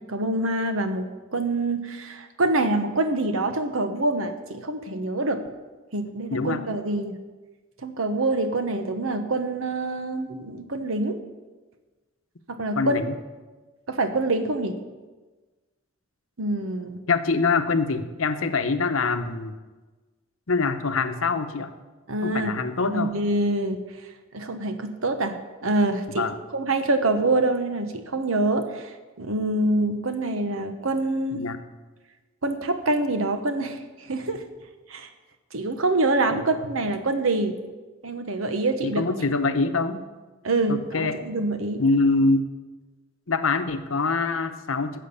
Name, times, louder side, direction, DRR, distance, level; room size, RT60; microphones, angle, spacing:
voice 1, 0.1-5.4 5.9-7.2 7.8-11.2 12.5-13.2 13.9-14.8 16.4-17.0 22.1-22.5 22.8-23.8 24.3-25.4 25.6-28.9 29.2-31.4 32.4-33.8 34.1-34.4 34.9-35.1 35.5-37.5 38.0-39.0 40.4-41.8, right 2 dB, 85° right, 8 dB, 1.1 m, -25 dB
voice 2, 6.3-6.6 12.8-13.1 17.1-19.5 20.5-21.7 22.2-23.1 26.2-26.3 31.3-31.6 36.3-36.4 38.8-40.1 40.7-41.2 41.8-42.5 43.3-45.0, left 3 dB, 85° left, 9 dB, 0.9 m, -24 dB
12.5 x 7.5 x 6.9 m, 1.3 s
head